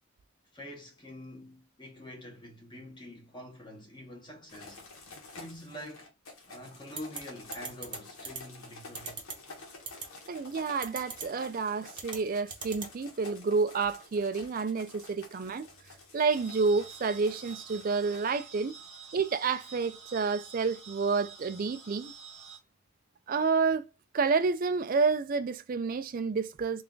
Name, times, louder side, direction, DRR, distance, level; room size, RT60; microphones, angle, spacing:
voice 1, 0.5-6.1 6.5-9.2, left 1 dB, 20° left, 0.9 m, -46 dB
sound 1, 4.5-18.3, left 3 dB, 80° left, 1.1 m, -50 dB
sound 2, 7.0-7.2 7.5-8.0 8.2-8.4 8.9-9.3 9.9-10.0 10.8-11.2 11.9-12.2 12.5-12.9, right 5 dB, 20° right, 0.8 m, -37 dB
voice 2, 10.3-15.7 16.1-18.7 19.1-22.1 23.3-23.9 24.1-26.8, right 4 dB, 40° right, 0.3 m, -29 dB
sound 3, 16.3-22.6, right 5 dB, 5° left, 1.2 m, -49 dB
3.3 x 2.4 x 3.7 m
head